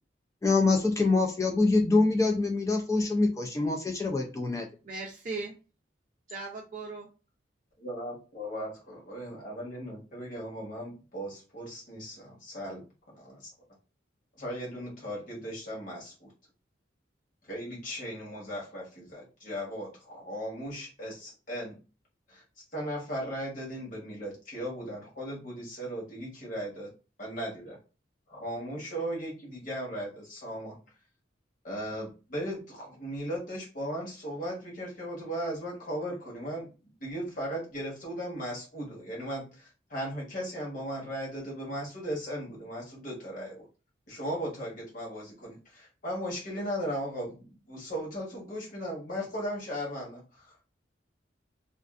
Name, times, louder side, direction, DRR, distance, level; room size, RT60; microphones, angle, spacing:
voice 1, 0.4-4.7, left 3 dB, 15° left, 2 dB, 0.4 m, -25 dB
voice 2, 4.8-5.5 6.3-7.1, right 3 dB, 45° right, -2 dB, 0.5 m, -37 dB
voice 3, 7.8-12.8 13.1-13.5 14.4-16.3 17.5-21.8 22.3-22.4 22.7-26.9 27.2-27.8 28.3-30.8 31.6-36.7 37.0-43.7 44.1-50.6, equal, 45° left, -3 dB, 1.2 m, -37 dB
2.4 x 2.4 x 2.4 m, 0.33 s
head